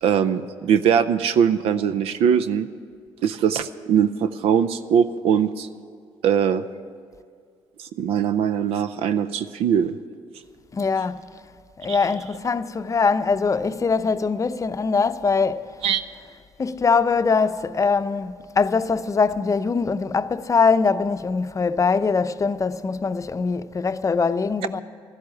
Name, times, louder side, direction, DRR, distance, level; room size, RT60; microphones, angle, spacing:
voice 1, 0.0-2.7 3.2-5.7 6.2-6.6 7.8-9.9 11.9-12.0 15.8-16.0, right 8 dB, 75° right, 0.5 m, -21 dB
voice 2, 10.7-11.3 11.8-15.7 16.6-24.8, left 4 dB, 30° left, 0.6 m, -22 dB
12.0 x 11.5 x 8.4 m
supercardioid pair, 65°, 10 cm